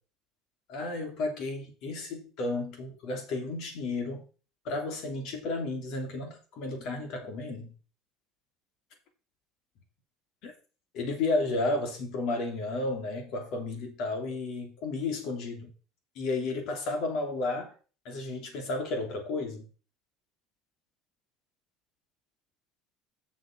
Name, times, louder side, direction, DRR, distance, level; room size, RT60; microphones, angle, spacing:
voice 1, 0.7-4.3 4.6-7.7 10.4-10.5 10.9-15.7 16.1-17.7 18.0-19.7, left 2 dB, 65° left, 3.1 m, -32 dB
7.0 x 6.5 x 6.1 m
hypercardioid pair, 75°, 0 cm